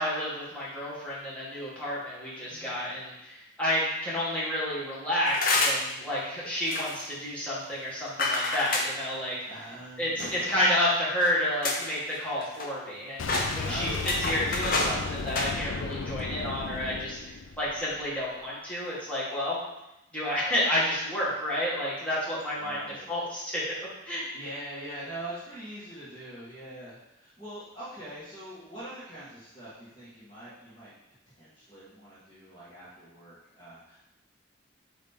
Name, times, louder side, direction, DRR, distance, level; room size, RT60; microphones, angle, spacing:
voice 1, 0.0-9.4 10.0-17.2 17.6-19.6 20.1-23.6 24.1-24.3, left 1 dB, 5° left, -9 dB, 1.8 m, -30 dB
sound 1, 5.3-5.9 6.7-7.0 8.2-8.9 10.2-10.7 11.2-11.3 11.6-11.9 12.2-12.9 13.2-15.0 15.3-15.5, left 2 dB, 45° left, 0.8 m, -28 dB
voice 2, 9.5-10.2 13.6-14.2 22.6-23.1 24.3-30.9 31.4-34.0, right 1 dB, 25° left, -12 dB, 1.9 m, -43 dB
Boom, 13.2-18.1, left 4 dB, 80° left, 0.5 m, -35 dB
8.8 x 3.2 x 3.7 m, 0.91 s
head